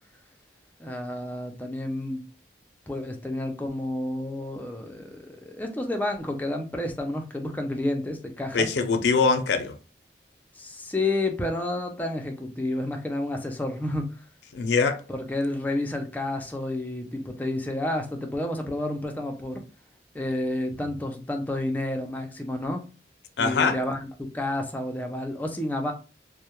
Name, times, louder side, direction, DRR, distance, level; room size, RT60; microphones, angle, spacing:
voice 1, 0.8-2.2 2.9-8.7 10.5-14.2 15.1-19.6 20.1-22.9 23.4-25.9, left 1 dB, 10° left, 0.4 m, -30 dB
voice 2, 8.5-9.7 14.5-15.0 20.8-20.9 23.4-23.8, left 4 dB, 75° left, 0.4 m, -23 dB
2.2 x 2.0 x 2.9 m
head